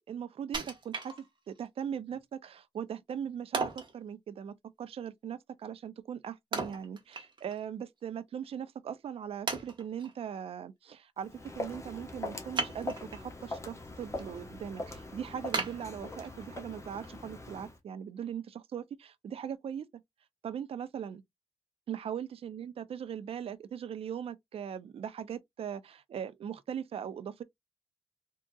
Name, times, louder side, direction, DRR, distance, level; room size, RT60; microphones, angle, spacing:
voice 1, 0.1-1.2 1.5-20.0 20.4-21.2 21.9-27.4, right 8 dB, 60° right, 0.4 m, -40 dB
Wood, 0.5-1.6 2.1-2.2 3.5-3.9 6.5-7.6 8.0-8.1 8.8-8.9 9.5-10.1 12.5-13.3 13.8-14.2 14.6-14.7 15.5-16.5 17.0-17.1, right 3 dB, 45° right, 1.0 m, -36 dB
Walk footsteps, 11.2-17.8, left 2 dB, 25° left, 0.9 m, -42 dB
3.6 x 2.7 x 2.2 m
wide cardioid pair, 110°, 11 cm